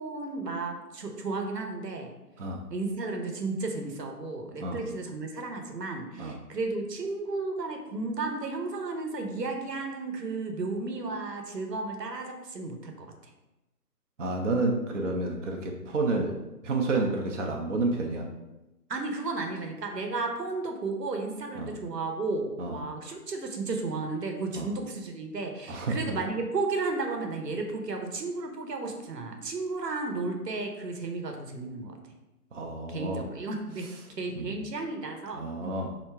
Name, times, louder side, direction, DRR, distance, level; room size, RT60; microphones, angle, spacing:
voice 1, 0.0-2.1 2.7-13.1 18.9-32.0 32.9-33.9 34.2-35.7, right 3 dB, 85° right, 3 dB, 1.0 m, -33 dB
voice 2, 14.2-16.3 16.6-18.2 21.6-21.7 22.6-22.8 24.6-24.7 25.7-26.0 32.5-33.3 34.4-34.6 35.3-35.9, right 2 dB, 50° right, 0 dB, 0.6 m, -30 dB
3.4 x 2.8 x 4.4 m, 1.0 s
figure-of-eight pair, 165°, 47 cm